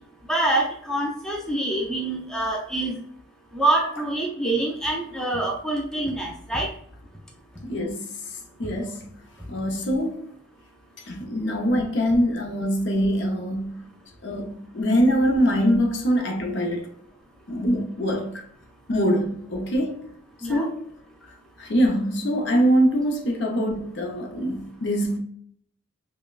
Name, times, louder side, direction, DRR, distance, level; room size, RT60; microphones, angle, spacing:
voice 1, 0.3-3.0 3.5-6.7 20.4-20.7, right 2 dB, 5° left, 0.4 m, -25 dB
voice 2, 7.6-8.1 8.6-9.0 9.5-10.3 11.0-13.8 14.2-14.5 14.7-16.9 17.5-18.3 18.9-20.0 20.5-20.8 21.6-25.2, equal, 60° left, 0.6 m, -23 dB
5.3 x 2.1 x 2.3 m
head